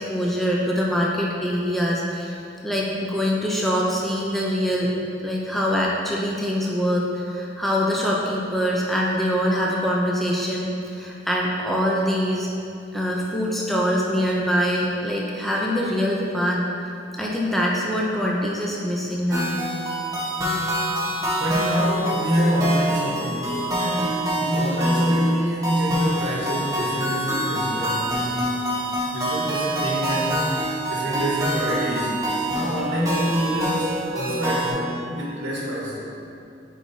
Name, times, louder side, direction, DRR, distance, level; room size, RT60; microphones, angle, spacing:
voice 1, 0.0-2.4 2.6-4.9 5.2-12.5 12.9-16.6 17.1-19.5, equal, ahead, -4 dB, 0.5 m, -24 dB
sound 1, 19.3-34.7, right 1 dB, 20° right, 1.1 m, -26 dB
voice 2, 21.4-28.3 29.1-30.5 30.9-36.0, equal, 90° right, -6 dB, 1.2 m, -25 dB
8.1 x 4.6 x 2.7 m, 2.6 s
head